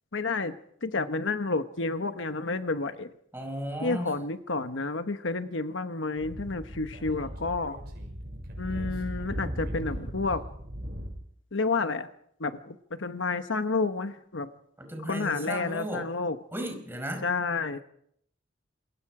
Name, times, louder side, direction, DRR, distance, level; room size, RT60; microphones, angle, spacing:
voice 1, 0.1-0.5 0.8-3.1 3.8-7.8 8.6-10.4 11.5-12.1 12.4-14.5 15.0-16.4 17.2-17.8, left 3 dB, 75° left, 9 dB, 1.1 m, -30 dB
voice 2, 3.3-4.1 14.8-16.1 16.5-17.3, equal, 10° right, 4 dB, 5.2 m, -35 dB
Speech / Wind, 6.2-11.1, equal, 55° right, 6.4 m, -37 dB
27.5 x 23.0 x 4.9 m, 0.69 s
head